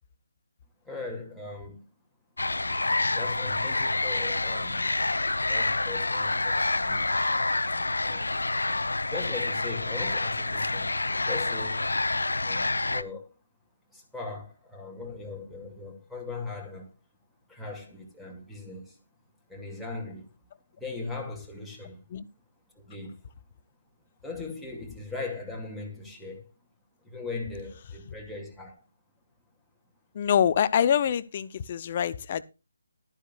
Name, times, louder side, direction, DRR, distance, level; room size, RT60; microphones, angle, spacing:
voice 1, 0.8-1.9 3.1-5.0 5.5-7.4 8.0-8.4 9.1-11.9 12.4-13.3 13.9-16.9 17.5-19.0 19.5-20.3 20.8-22.0 22.8-23.2 24.2-26.5 27.0-28.8, left 3 dB, ahead, 2.5 m, -39 dB
sound 1, 2.4-13.0, left 2 dB, 70° left, 0.8 m, -28 dB
voice 2, 30.1-32.4, left 9 dB, 35° left, 0.7 m, -25 dB
14.5 x 12.5 x 2.4 m
figure-of-eight pair, 145°, 0 cm